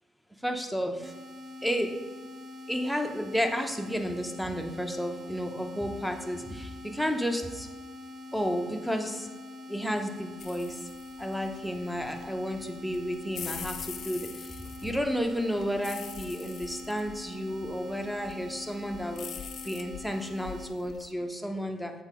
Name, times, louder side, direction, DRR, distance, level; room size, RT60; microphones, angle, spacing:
voice 1, 0.4-1.1 1.6-1.9 2.7-7.7 8.3-9.3 9.7-10.9 11.2-19.3 19.6-21.9, equal, ahead, 3 dB, 0.7 m, -32 dB
sound 1, 1.0-20.7, left 2 dB, 50° right, 0.6 m, -44 dB
sound 2, 10.4-21.1, left 8 dB, 65° left, 0.5 m, -44 dB
7.2 x 3.7 x 4.9 m, 1.2 s
cardioid pair, 90°, 0 cm